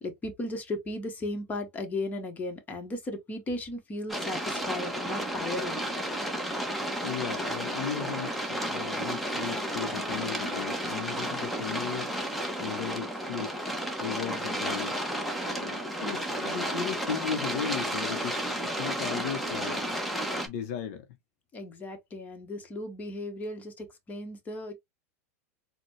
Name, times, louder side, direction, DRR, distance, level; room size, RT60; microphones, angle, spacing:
voice 1, 0.0-5.8 21.5-24.7, left 2 dB, 20° left, 1.1 m, -36 dB
sound 1, 4.1-20.5, equal, ahead, 0.8 m, -32 dB
voice 2, 7.0-12.1 12.6-13.7 14.0-15.0 15.4-19.9 20.5-21.1, left 8 dB, 65° left, 0.7 m, -36 dB
4.0 x 2.2 x 3.1 m
supercardioid pair, 125°, 8 cm